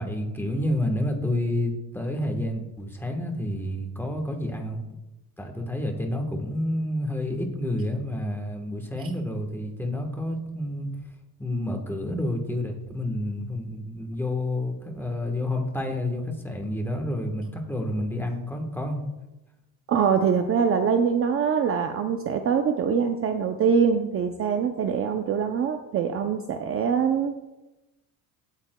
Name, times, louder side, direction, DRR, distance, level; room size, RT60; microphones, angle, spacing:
voice 1, 0.0-4.8 5.4-10.9 11.4-19.0, left 1 dB, 5° left, 3 dB, 1.2 m, -29 dB
voice 2, 19.9-27.4, right 6 dB, 35° right, 6 dB, 0.5 m, -24 dB
15.5 x 9.0 x 2.2 m, 1.0 s
cardioid pair, 145°, 41 cm